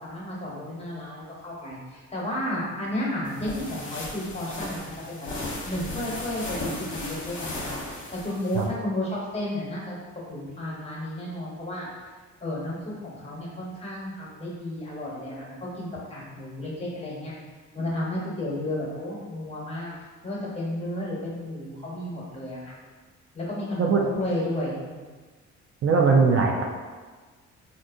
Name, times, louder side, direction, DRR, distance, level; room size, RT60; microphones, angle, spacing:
voice 1, 0.0-5.3 5.6-7.7 8.1-9.9 10.3-11.9 12.4-17.3 17.7-19.9 20.2-22.7 23.3-25.0, left 1 dB, 20° left, -5 dB, 1.1 m, -32 dB
sound 1, 3.2-8.7, left 2 dB, 40° left, 0.9 m, -36 dB
voice 2, 25.8-26.6, right 5 dB, 45° right, 0 dB, 0.4 m, -20 dB
3.6 x 2.5 x 2.6 m, 1.4 s
cardioid pair, 90°, 30 cm